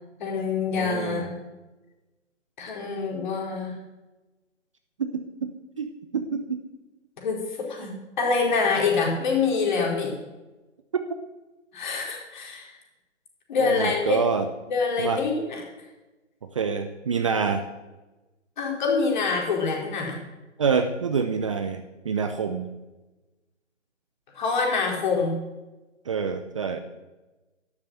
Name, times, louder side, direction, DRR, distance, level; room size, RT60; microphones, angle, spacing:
voice 1, 0.2-1.3 2.6-3.8 7.2-10.1 11.7-12.7 13.5-14.2 14.7-15.6 18.6-20.2 24.4-25.4, left 4 dB, 40° left, 0 dB, 4.5 m, -25 dB
voice 2, 0.7-1.3 5.0-6.6 13.6-14.5 15.0-15.2 16.5-17.6 20.6-22.7 26.1-26.8, right 6 dB, 25° right, 8 dB, 0.7 m, -27 dB
12.0 x 11.5 x 7.7 m, 1.1 s
figure-of-eight pair, 140°, 37 cm